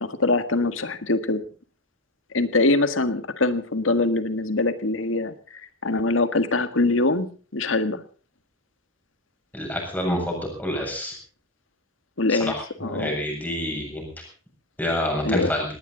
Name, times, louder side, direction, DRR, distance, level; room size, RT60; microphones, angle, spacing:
voice 1, 0.0-1.4 2.3-7.3 7.5-8.0 12.2-13.2 15.2-15.5, left 2 dB, 85° left, 11 dB, 1.8 m, -23 dB
voice 2, 9.5-11.1 12.5-12.6 12.8-14.1 14.8-15.6, left 1 dB, 10° left, 1 dB, 7.4 m, -27 dB
19.0 x 18.5 x 4.0 m, 0.37 s
head